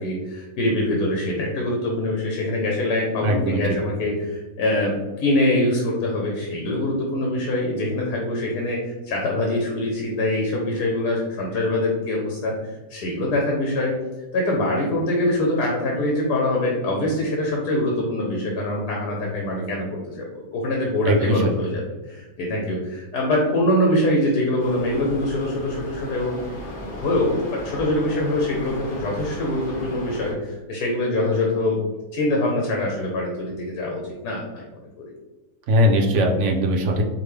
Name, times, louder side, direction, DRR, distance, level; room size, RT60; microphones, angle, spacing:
voice 1, 0.0-12.5 12.9-13.9 14.3-26.4 26.9-31.8 32.1-34.8, left 1 dB, 75° left, -2 dB, 1.4 m, -24 dB
voice 2, 3.2-3.8 21.0-21.5 35.7-37.0, equal, 60° right, 2 dB, 0.8 m, -20 dB
sound 1, 24.6-30.3, left 1 dB, 45° left, 1.6 m, -36 dB
5.0 x 2.9 x 3.2 m, 1.2 s
omnidirectional pair, 1.7 m